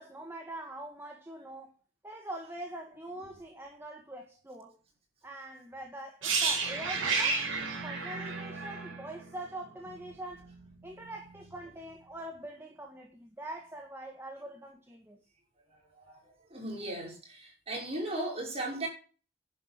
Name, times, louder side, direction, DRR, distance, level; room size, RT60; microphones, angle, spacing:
voice 1, 0.0-1.7 2.0-4.8 5.2-7.4 7.8-10.5 10.8-15.2, right 1 dB, 10° right, 1.7 m, -43 dB
sound 1, 6.2-10.1 10.3-10.5, right 4 dB, 80° right, 6.3 m, -32 dB
voice 2, 16.0-18.9, right 1 dB, 30° right, 5.8 m, -37 dB
11.0 x 8.1 x 6.6 m
head